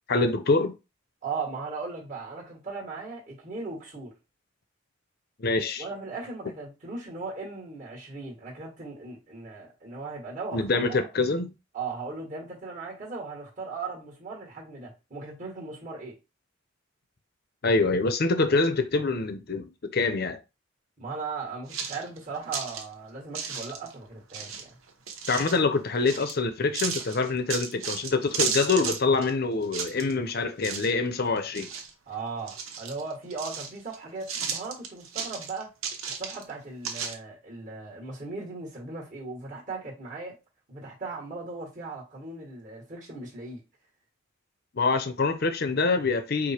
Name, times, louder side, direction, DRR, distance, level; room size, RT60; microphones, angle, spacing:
voice 1, 0.1-0.8 5.4-5.8 10.5-11.5 17.6-20.4 25.3-31.7 44.7-46.5, left 3 dB, 50° left, 0.6 m, -25 dB
voice 2, 1.2-4.1 5.8-11.1 11.7-16.2 21.0-24.8 32.1-35.7 36.2-40.4 40.7-43.6, right 4 dB, 35° right, 1.5 m, -38 dB
sound 1, 21.7-22.8 23.3-23.9 24.3-25.6 26.1-26.4 26.7-29.3 29.6-30.3 30.6-31.1 31.4-32.1 32.5-34.0 34.2-36.5 36.8-37.1, right 6 dB, 80° right, 0.9 m, -34 dB
4.9 x 2.1 x 4.3 m
head